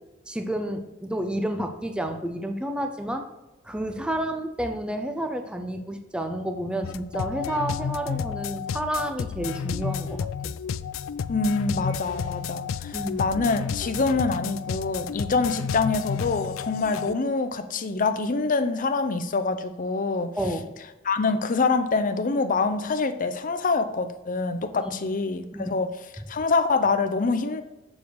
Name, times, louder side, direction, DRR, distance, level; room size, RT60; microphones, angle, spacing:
voice 1, 0.3-3.3 3.6-10.5 12.9-13.3 20.4-20.7 24.9-25.0 25.5-25.7, right 1 dB, 5° right, 6 dB, 0.5 m, -30 dB
sound 1, 6.8-17.1, left 7 dB, 80° left, 0.4 m, -31 dB
voice 2, 11.3-20.3 21.0-25.9 26.3-27.6, left 4 dB, 45° left, 9 dB, 0.6 m, -25 dB
7.2 x 6.5 x 4.7 m, 1.1 s
head